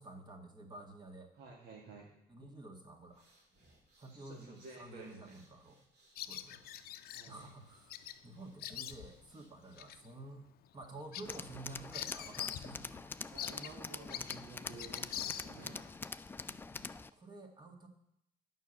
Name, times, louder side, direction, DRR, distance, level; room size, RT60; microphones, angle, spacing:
voice 1, 0.0-1.3 2.3-3.3 4.0-5.8 6.2-6.7 7.3-13.0 16.5-17.9, right 2 dB, 25° right, 3 dB, 1.9 m, -51 dB
voice 2, 1.3-2.1 4.0-5.4 7.1-7.4 13.3-15.9, right 3 dB, 65° right, -3 dB, 2.2 m, -52 dB
sound 1, 3.0-10.1, right 1 dB, 85° right, 3.6 m, -69 dB
Bird vocalization bird call bird song, 6.2-7.3 7.9-8.2 8.4-9.3 9.8-10.0 10.4-10.5 10.8-12.7 13.0-13.1 13.4-15.8, left 11 dB, 65° left, 0.6 m, -44 dB
Tools, 11.2-17.1, left 3 dB, 15° left, 0.3 m, -45 dB
9.2 x 5.6 x 7.8 m, 0.77 s
cardioid pair, 110°, 17 cm